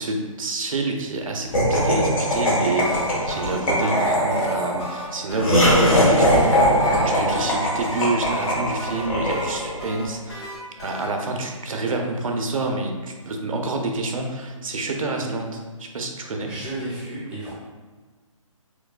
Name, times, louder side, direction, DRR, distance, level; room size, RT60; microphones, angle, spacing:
voice 1, 0.0-6.5 6.9-10.5 10.8-16.5, right 2 dB, 70° right, 3 dB, 0.6 m, -27 dB
Laughter, 1.5-9.9, equal, 80° left, 1.2 m, -21 dB
sound 1, 2.8-11.1, left 1 dB, 50° left, 1.3 m, -36 dB
voice 2, 16.5-17.5, right 1 dB, 5° right, -8 dB, 0.5 m, -32 dB
4.5 x 2.2 x 2.4 m, 1.4 s
hypercardioid pair, 155°, 18 cm